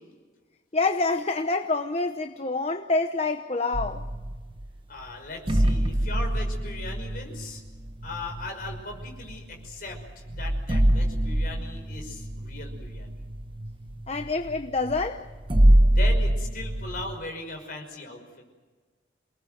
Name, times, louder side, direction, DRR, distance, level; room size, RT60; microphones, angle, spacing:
voice 1, 0.7-4.1 14.1-15.3, left 3 dB, 35° left, 0.9 m, -27 dB
sound 1, 3.7-4.7 5.5-9.4 9.9-10.0 10.3-17.2, right 1 dB, 25° right, 0.9 m, -25 dB
voice 2, 4.9-7.6 8.0-13.1 15.9-18.4, left 2 dB, 50° left, 5.6 m, -39 dB
28.0 x 19.5 x 7.9 m
head